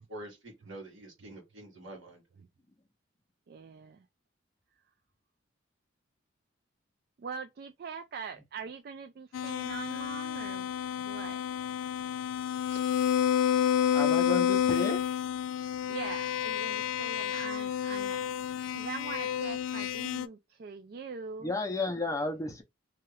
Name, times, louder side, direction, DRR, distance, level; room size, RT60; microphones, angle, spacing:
voice 1, 0.1-2.2 12.7-12.9, right 1 dB, 80° right, 1.5 m, -46 dB
voice 2, 3.5-4.0 7.2-10.7 11.0-11.4 15.9-18.3 18.7-21.5, right 5 dB, 50° right, 0.3 m, -42 dB
sound 1, 9.3-20.3, left 9 dB, 80° left, 0.3 m, -30 dB
voice 3, 13.9-15.0 21.4-22.6, left 2 dB, 15° left, 0.5 m, -32 dB
2.8 x 2.4 x 3.1 m
head